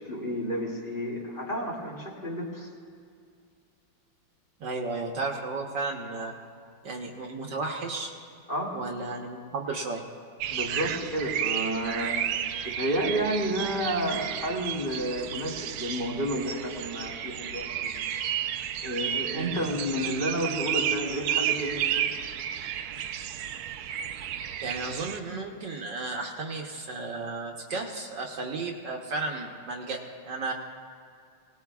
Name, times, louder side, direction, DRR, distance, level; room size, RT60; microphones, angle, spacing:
voice 1, 0.0-2.7 8.5-8.8 10.5-12.2 12.6-17.9 18.8-22.1, equal, 25° left, -4 dB, 2.4 m, -31 dB
voice 2, 4.6-6.3 6.8-8.1 8.7-10.0 19.3-19.6 24.6-30.0 30.2-30.5, right 3 dB, 65° right, 1 dB, 1.6 m, -33 dB
sound 1, 10.4-25.2, right 10 dB, 85° right, 1.5 m, -32 dB
23.5 x 19.0 x 2.4 m, 2.2 s
omnidirectional pair, 2.3 m